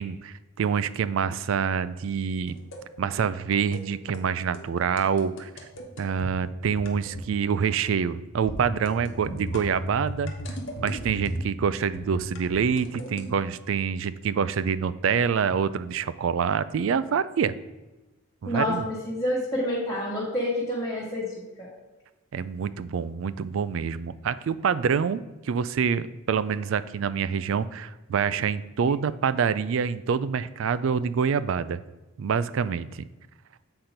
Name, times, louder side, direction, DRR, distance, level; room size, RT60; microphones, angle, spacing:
voice 1, 0.0-2.5 3.0-5.5 6.0-10.3 10.8-17.5 18.4-18.8 22.3-31.8 32.2-33.0, right 6 dB, 65° right, 15 dB, 0.3 m, -26 dB
sound 1, 2.5-2.8 3.5-3.8 4.1-4.3 4.5-4.6 5.0-6.3 6.8-7.3 7.6-7.9 8.5-11.5 11.9-13.2, equal, 55° left, 1.1 m, -36 dB
voice 2, 18.4-21.7, left 1 dB, 15° left, -9 dB, 1.7 m, -28 dB
7.8 x 4.4 x 5.0 m, 1.1 s
head